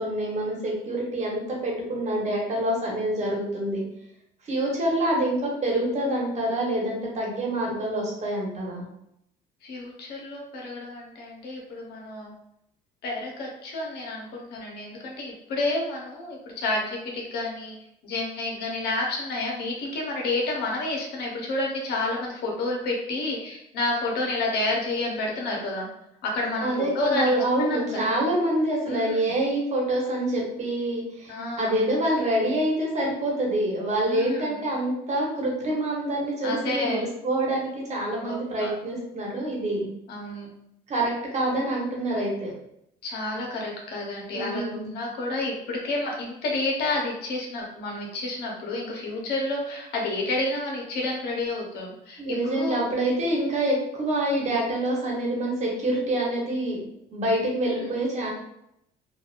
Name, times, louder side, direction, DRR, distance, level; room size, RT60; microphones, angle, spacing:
voice 1, 0.0-3.8 4.4-8.8 26.6-39.8 40.9-42.5 44.3-44.9 52.2-56.8 57.1-58.3, right 1 dB, 40° right, -3 dB, 1.2 m, -26 dB
voice 2, 9.6-12.3 13.0-17.7 18.0-25.9 26.2-27.3 27.6-28.1 28.9-29.3 31.3-31.8 34.1-34.6 36.4-37.0 38.2-38.7 40.1-40.5 43.0-52.9, left 2 dB, 75° left, -1 dB, 0.9 m, -30 dB
3.4 x 2.3 x 2.5 m, 0.78 s
cardioid pair, 110°, 17 cm